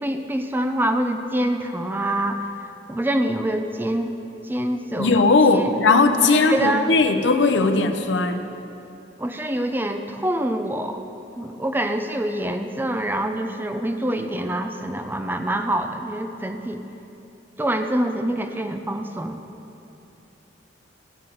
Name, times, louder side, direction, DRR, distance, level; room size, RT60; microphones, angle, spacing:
voice 1, 0.0-4.1 4.4-5.2 5.5-5.7 6.2-6.9 9.2-11.0 11.4-16.8 17.6-19.4, right 1 dB, 10° right, 6 dB, 0.5 m, -25 dB
voice 2, 5.0-8.5, left 3 dB, 80° left, 8 dB, 0.7 m, -18 dB
14.0 x 5.8 x 7.7 m, 2.9 s
head